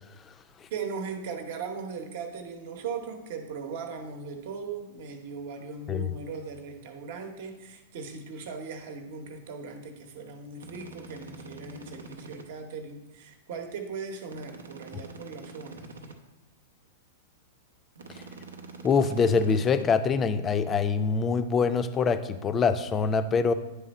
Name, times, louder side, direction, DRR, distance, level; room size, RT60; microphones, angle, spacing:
voice 1, 0.7-15.9, right 5 dB, 60° right, 5 dB, 0.9 m, -38 dB
sound 1, 10.6-12.5 14.3-16.2 17.9-19.8, right 2 dB, 85° right, 0.6 m, -45 dB
voice 2, 18.8-23.5, left 5 dB, 25° left, 11 dB, 0.4 m, -24 dB
9.5 x 3.4 x 4.1 m, 1.0 s
hypercardioid pair, 115°, 0 cm